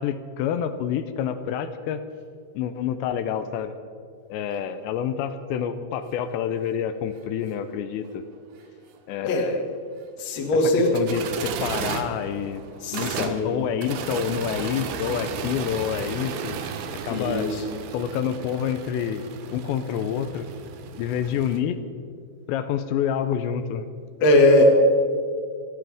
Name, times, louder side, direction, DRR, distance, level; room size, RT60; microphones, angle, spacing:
voice 1, 0.0-2.0 2.6-3.7 4.3-8.2 9.1-9.7 10.9-12.6 12.9-16.6 17.0-17.5 17.9-19.3 19.5-20.5 21.0-21.8 22.5-23.9, left 9 dB, 85° left, 9 dB, 2.9 m, -28 dB
sound 1, 6.3-6.4 6.6-6.7 9.1-9.2 10.6-21.6, right 7 dB, 75° right, 2.9 m, -34 dB
voice 2, 10.2-10.9 12.8-13.6 17.1-17.6 24.2-24.6, left 2 dB, 50° left, 0 dB, 2.5 m, -20 dB
28.5 x 11.5 x 3.5 m, 2.2 s
omnidirectional pair, 5.0 m